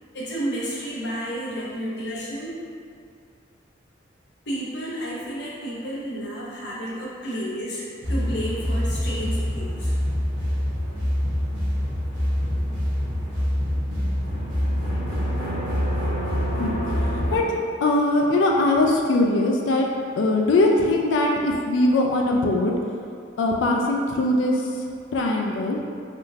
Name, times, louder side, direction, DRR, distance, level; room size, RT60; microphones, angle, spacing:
voice 1, 0.1-2.6 4.5-9.9, equal, 60° left, -6 dB, 0.8 m, -31 dB
sound 1, 8.0-17.4, equal, 70° right, 0.8 m, -25 dB
voice 2, 17.1-19.9 20.2-22.7 23.4-24.7 25.1-25.8, left 2 dB, 80° left, 0 dB, 0.3 m, -21 dB
3.5 x 2.4 x 2.6 m, 2.4 s
head